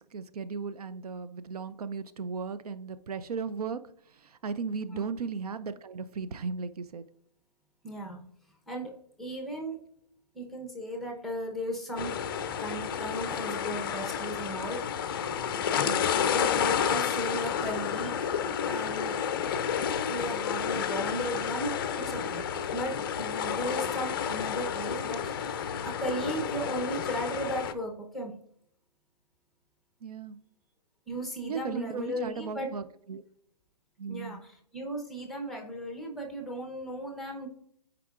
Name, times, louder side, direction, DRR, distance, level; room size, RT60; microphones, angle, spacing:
voice 1, 0.0-3.8 4.1-7.0 15.8-16.1 30.0-30.4 31.4-33.2 34.0-34.4, right 5 dB, 65° right, 12 dB, 0.5 m, -36 dB
voice 2, 7.8-8.2 8.7-8.9 9.2-9.8 10.3-12.1 12.6-15.3 16.3-18.2 18.6-19.2 19.5-22.4 22.7-28.3 31.1-32.7 34.1-37.5, equal, ahead, 1 dB, 0.8 m, -36 dB
sound 1, 12.0-27.7, left 8 dB, 35° left, 0.5 m, -31 dB
11.5 x 4.8 x 2.4 m, 0.69 s
hypercardioid pair, 145°, 21 cm